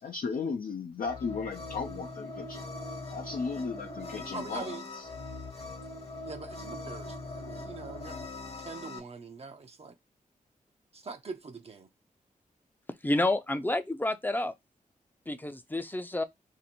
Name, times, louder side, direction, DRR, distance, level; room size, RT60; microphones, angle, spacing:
voice 1, 0.0-2.6 3.1-5.1, left 5 dB, 75° left, 0.6 m, -35 dB
sound 1, 1.0-9.0, left 2 dB, 45° left, 1.0 m, -41 dB
voice 2, 4.3-4.9 6.2-8.2 8.6-10.0 10.9-11.9, right 4 dB, 45° right, 0.5 m, -43 dB
voice 3, 13.0-14.5 15.3-16.2, left 2 dB, 15° left, 0.5 m, -29 dB
2.7 x 2.6 x 4.2 m
cardioid pair, 65°, 15 cm